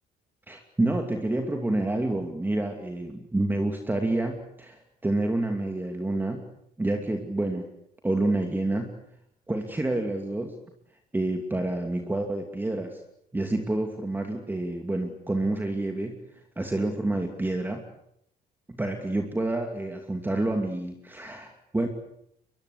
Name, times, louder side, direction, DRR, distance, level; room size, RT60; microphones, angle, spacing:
voice 1, 0.5-6.4 6.8-7.7 8.0-8.9 9.5-10.5 11.1-13.0 13.3-16.2 16.6-17.8 18.7-21.9, right 2 dB, 10° right, 4 dB, 2.7 m, -28 dB
22.5 x 22.5 x 8.3 m, 0.74 s
cardioid pair, 110°, 17 cm